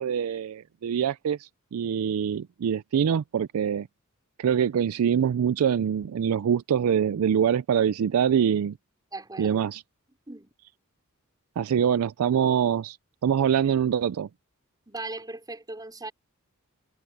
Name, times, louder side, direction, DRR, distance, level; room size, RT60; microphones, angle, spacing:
voice 1, 0.0-3.9 4.4-8.8 9.4-9.8 11.6-13.0 13.2-14.3, right 8 dB, 75° right, 0.4 m, -24 dB
voice 2, 9.1-9.6 10.3-10.5 14.9-16.1, right 2 dB, 20° right, 4.6 m, -38 dB
head